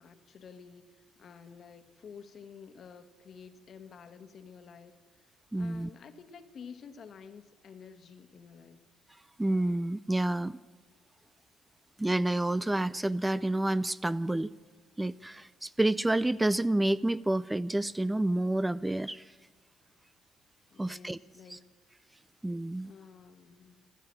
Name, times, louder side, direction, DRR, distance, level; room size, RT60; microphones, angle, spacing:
voice 1, 0.0-8.8 20.7-21.7 22.8-23.8, left 6 dB, 55° left, 9 dB, 1.3 m, -51 dB
voice 2, 5.5-5.9 9.4-10.6 12.0-14.5 15.0-19.3 20.8-21.2 21.5-21.6 22.4-22.9, right 1 dB, 15° right, 17 dB, 0.4 m, -29 dB
15.0 x 12.5 x 7.4 m, 1.4 s
hypercardioid pair, 55°, 0 cm